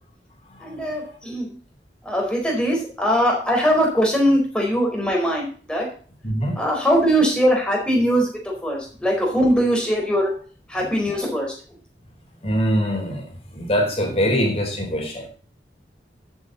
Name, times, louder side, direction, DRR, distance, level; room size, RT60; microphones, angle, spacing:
voice 1, 0.6-1.5 2.0-5.9 6.6-8.3 8.6-10.3 10.7-11.5, equal, 5° left, -1 dB, 4.5 m, -21 dB
voice 2, 6.2-6.5 12.4-13.3 13.5-15.3, equal, 35° left, 2 dB, 4.0 m, -22 dB
13.5 x 8.2 x 4.1 m, 0.41 s
head